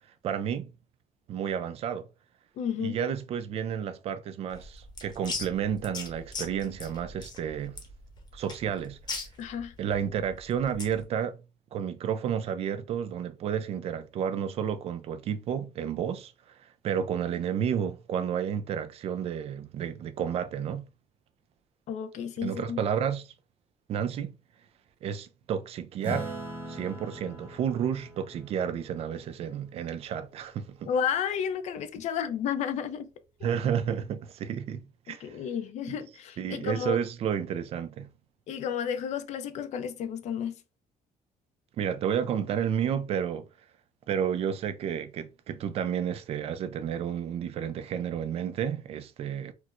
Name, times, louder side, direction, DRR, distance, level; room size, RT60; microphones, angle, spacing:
voice 1, 0.2-0.7 1.3-2.1 2.8-7.8 8.3-9.0 9.8-11.4 11.7-20.9 22.4-23.3 23.9-24.4 25.0-26.3 26.7-30.9 33.4-35.4 35.9-36.0 36.4-38.1 41.8-43.5 44.1-49.5, right 8 dB, 50° right, 0.3 m, -31 dB
voice 2, 2.6-3.0 9.4-9.7 21.9-22.8 30.9-33.1 35.1-37.0 38.5-40.5, left 8 dB, 60° left, 0.4 m, -32 dB
sound 1, 4.5-11.0, left 3 dB, 30° left, 0.8 m, -40 dB
Acoustic guitar / Strum, 26.0-30.9, right 1 dB, 15° right, 0.7 m, -41 dB
4.4 x 2.1 x 2.4 m
cardioid pair, 170°, 14 cm